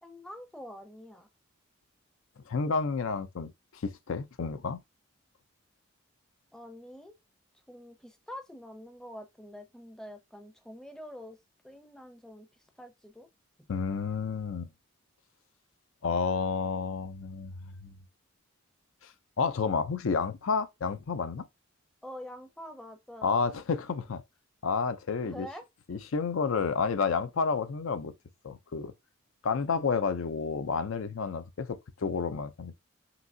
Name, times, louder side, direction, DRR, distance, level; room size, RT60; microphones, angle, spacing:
voice 1, 0.0-1.3 6.5-7.2 7.7-11.4 11.6-12.5 12.8-13.3 22.0-23.4 25.2-25.6, equal, 5° left, 0.5 m, -46 dB
voice 2, 2.5-4.8 13.7-14.7 16.0-17.9 19.0-19.1 19.4-21.5 23.2-24.2 24.6-25.5 25.9-28.1 28.4-28.9 29.4-32.8, left 5 dB, 70° left, 0.5 m, -30 dB
5.8 x 2.7 x 2.6 m
head